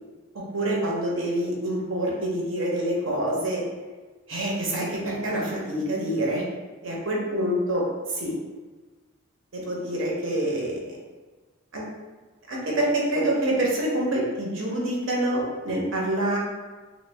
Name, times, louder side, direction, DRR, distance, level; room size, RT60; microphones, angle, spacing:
voice 1, 0.5-3.6 4.3-6.4 6.8-8.3 9.5-10.9 11.7-11.8 12.5-16.4, right 1 dB, 65° right, -3 dB, 0.8 m, -26 dB
3.0 x 2.2 x 3.3 m, 1.3 s
head